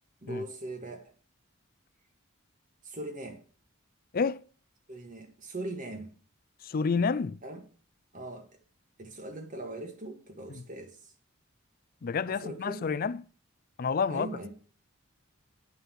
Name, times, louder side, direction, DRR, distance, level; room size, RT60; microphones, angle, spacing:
voice 1, 0.2-1.1 2.8-3.4 4.9-6.1 7.4-7.6 8.1-8.5 9.0-11.1 12.3-12.8 14.1-14.5, right 1 dB, 40° right, 1.7 m, -40 dB
voice 2, 6.6-7.4 12.0-13.2 13.8-14.5, left 5 dB, 45° left, 0.4 m, -29 dB
9.3 x 5.5 x 5.8 m
head